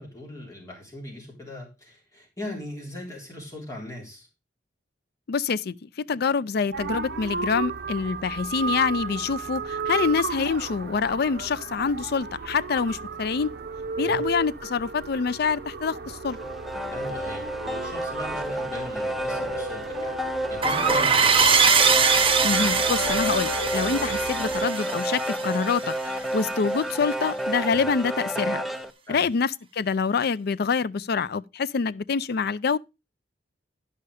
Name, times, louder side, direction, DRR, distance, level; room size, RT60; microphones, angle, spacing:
voice 1, 0.0-4.3 14.0-14.3 16.9-20.2 20.5-21.5 27.7-27.9 29.1-29.3, left 1 dB, 20° left, 3.6 m, -39 dB
voice 2, 5.3-13.5 14.0-16.4 22.4-28.6 29.1-32.8, left 5 dB, 60° left, 0.4 m, -26 dB
sound 1, 6.7-24.7, right 4 dB, 60° right, 0.8 m, -34 dB
sound 2, 16.3-28.9, right 1 dB, ahead, 0.6 m, -30 dB
sound 3, 20.6-25.9, right 5 dB, 30° right, 0.9 m, -22 dB
11.5 x 5.7 x 4.9 m
head